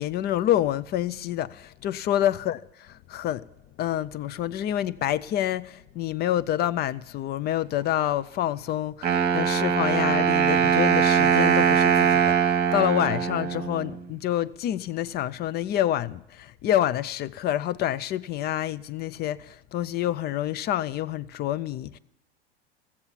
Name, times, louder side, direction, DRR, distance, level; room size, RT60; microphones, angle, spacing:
voice 1, 0.0-2.6 3.1-3.5 3.8-22.0, left 12 dB, 30° left, 0.4 m, -27 dB
Wind instrument woodwind instrument, 9.0-14.0, right 7 dB, 30° right, 1.1 m, -22 dB
16.0 x 7.3 x 9.9 m
hypercardioid pair, 90°, 32 cm